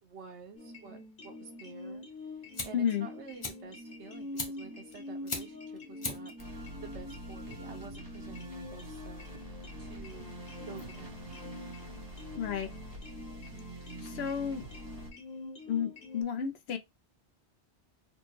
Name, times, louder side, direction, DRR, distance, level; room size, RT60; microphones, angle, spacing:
voice 1, 0.0-2.0 2.6-10.4 10.7-11.4 15.3-15.4, right 5 dB, 85° right, 1.2 m, -50 dB
sound 1, 0.6-16.2, left 2 dB, 50° left, 1.3 m, -46 dB
Fire, 2.1-12.6, left 2 dB, 30° left, 0.8 m, -44 dB
voice 2, 2.7-3.1 12.4-12.7 14.0-14.6 15.7-16.8, left 8 dB, 70° left, 0.9 m, -32 dB
sound 2, 6.4-15.1, right 1 dB, 20° right, 1.1 m, -46 dB
4.2 x 2.2 x 3.0 m
omnidirectional pair, 1.1 m